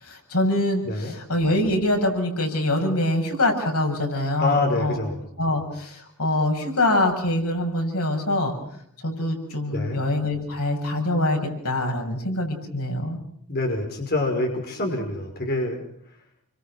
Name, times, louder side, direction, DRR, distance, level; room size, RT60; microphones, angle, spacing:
voice 1, 0.0-5.0 5.4-8.6 9.0-11.4 11.6-13.2, left 1 dB, 85° left, 2 dB, 7.6 m, -24 dB
voice 2, 4.4-5.2 9.7-10.0 13.5-15.8, left 2 dB, 45° left, 2 dB, 5.5 m, -26 dB
29.0 x 25.5 x 6.2 m, 0.67 s
head